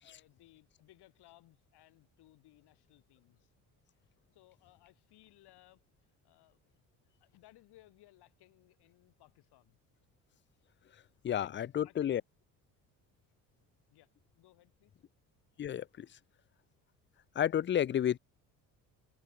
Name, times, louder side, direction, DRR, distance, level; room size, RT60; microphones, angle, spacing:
voice 1, 0.0-3.5 4.3-6.6 7.2-9.8 11.3-12.1 13.9-14.9, left 16 dB, 65° left, 2.9 m, -63 dB
voice 2, 11.2-12.2 15.6-16.1 17.4-18.2, left 10 dB, 30° left, 0.5 m, -31 dB
hypercardioid pair, 60°, 42 cm